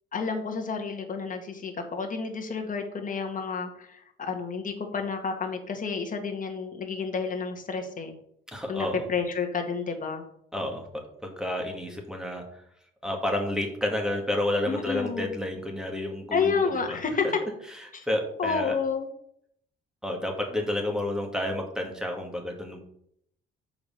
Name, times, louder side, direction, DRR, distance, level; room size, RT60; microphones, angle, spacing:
voice 1, 0.1-8.2 8.7-10.2 14.7-15.3 16.3-17.3 17.9-18.0 18.4-19.1, left 5 dB, 40° left, 3 dB, 1.8 m, -30 dB
voice 2, 8.5-9.1 10.5-10.8 11.2-12.6 13.0-17.0 18.1-18.8 20.0-22.8, left 1 dB, 5° right, 1 dB, 2.1 m, -30 dB
7.1 x 4.9 x 5.6 m, 0.70 s
cardioid pair, 90°, 20 cm